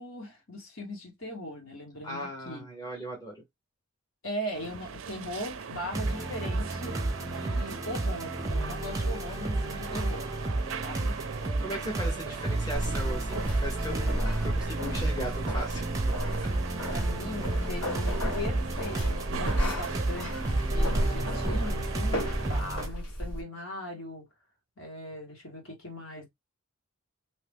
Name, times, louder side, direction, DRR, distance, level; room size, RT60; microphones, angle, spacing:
voice 1, 0.0-2.6 4.2-10.3 10.8-11.1 16.9-24.2 24.8-26.3, left 1 dB, 60° left, 1.6 m, -39 dB
voice 2, 2.0-3.4 7.5-7.7 11.6-16.1 16.4-16.7, equal, 15° left, 1.0 m, -38 dB
sound 1, 4.5-22.6, right 5 dB, 60° right, 0.5 m, -40 dB
sound 2, 5.9-22.9, right 2 dB, 15° right, 0.6 m, -32 dB
sound 3, 12.7-23.4, equal, 85° left, 1.8 m, -33 dB
2.9 x 2.8 x 3.4 m
head